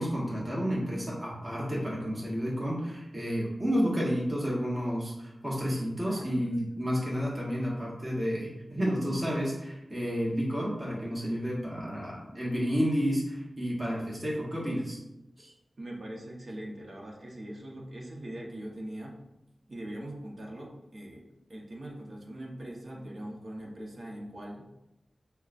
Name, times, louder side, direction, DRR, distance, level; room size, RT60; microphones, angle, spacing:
voice 1, 0.0-15.0 15.4-15.5, equal, 25° right, -5 dB, 1.2 m, -31 dB
voice 2, 6.0-6.4 15.8-19.2 19.7-21.2 21.5-24.6, right 1 dB, 60° right, -2 dB, 0.9 m, -41 dB
6.4 x 2.2 x 2.5 m, 0.89 s
wide cardioid pair, 75°, 0 cm